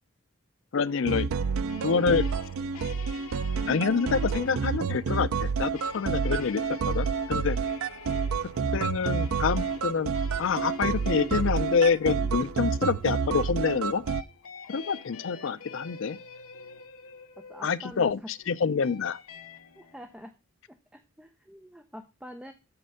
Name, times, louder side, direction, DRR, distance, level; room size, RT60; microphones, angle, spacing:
voice 1, 0.7-1.3 1.8-2.2 3.7-7.6 8.7-10.1 10.4-14.0 14.7-16.2 17.6-18.2 18.5-19.2, left 5 dB, 65° left, 0.5 m, -27 dB
sound 1, 1.0-14.2, right 5 dB, 80° right, 0.4 m, -29 dB
sound 2, 1.4-20.1, left 5 dB, 85° left, 1.2 m, -47 dB
voice 2, 17.4-18.1 19.8-20.3 20.7-22.5, equal, 5° right, 0.5 m, -45 dB
7.9 x 4.4 x 6.3 m
head